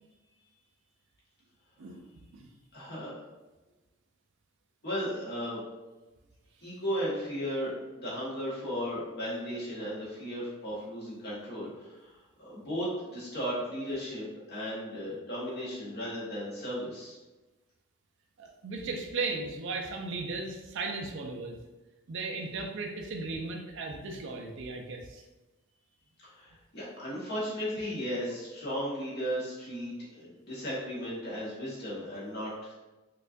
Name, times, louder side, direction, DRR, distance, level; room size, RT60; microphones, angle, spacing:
voice 1, 2.7-3.1 4.8-5.6 6.6-17.2 26.2-32.7, equal, 50° left, -7 dB, 1.4 m, -35 dB
voice 2, 18.4-21.6 22.1-25.2, right 3 dB, 60° right, 2 dB, 0.4 m, -36 dB
4.2 x 2.4 x 2.5 m, 1.1 s
head